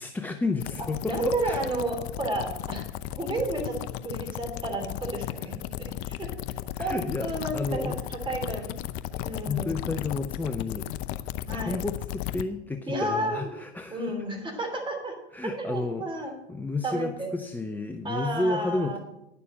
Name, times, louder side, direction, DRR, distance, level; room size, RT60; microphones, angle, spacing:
voice 1, 0.0-1.6 6.8-8.0 9.5-10.9 11.5-14.1 15.3-16.1 16.5-19.0, left 3 dB, 5° left, 6 dB, 0.4 m, -31 dB
sound 1, 0.6-12.4, left 13 dB, 45° left, 0.7 m, -35 dB
voice 2, 1.0-2.8 3.2-6.3 6.8-8.8 9.2-9.8 11.5-11.8 12.9-13.5 13.9-15.1 15.4-16.4 16.8-17.3 18.0-19.0, right 2 dB, 15° right, 2 dB, 3.2 m, -32 dB
10.0 x 6.8 x 7.3 m, 0.91 s
hypercardioid pair, 100°, 33 cm